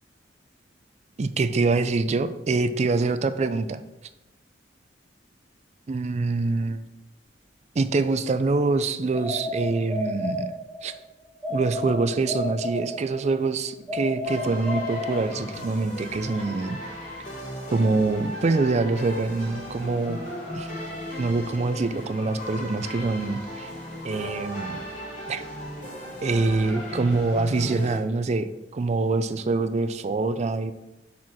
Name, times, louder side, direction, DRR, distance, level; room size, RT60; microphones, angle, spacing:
voice 1, 1.2-3.8 5.9-6.9 7.8-10.5 10.8-10.9 11.5-16.8 17.7-20.2 20.5-20.7 21.2-23.7 24.0-24.9 25.3-25.4 26.2-30.7, right 3 dB, 40° right, 12 dB, 0.4 m, -25 dB
sound 1, 9.1-10.9 11.4-13.3 13.9-15.7, left 1 dB, 15° right, 1.7 m, -31 dB
sound 2, 14.2-28.0, equal, 45° left, 2.7 m, -36 dB
6.3 x 4.3 x 6.0 m, 0.96 s
head